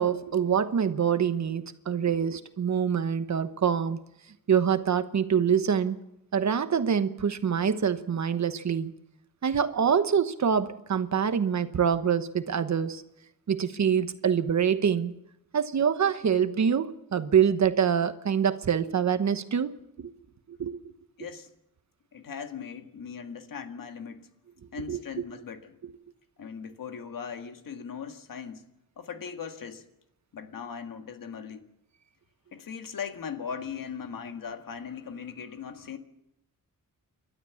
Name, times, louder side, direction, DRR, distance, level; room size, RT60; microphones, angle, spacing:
voice 1, 0.0-4.0 4.5-6.0 6.3-8.9 9.4-13.0 13.5-15.2 15.5-19.7 20.0-20.1 20.5-20.8 24.9-25.0, right 7 dB, 55° right, 1.1 m, -25 dB
voice 2, 21.2-21.5 22.1-24.3 24.7-25.8 26.4-28.6 29.0-29.8 30.3-31.7 32.5-36.0, left 6 dB, 70° left, 1.8 m, -39 dB
29.5 x 12.5 x 7.2 m
wide cardioid pair, 130°, 34 cm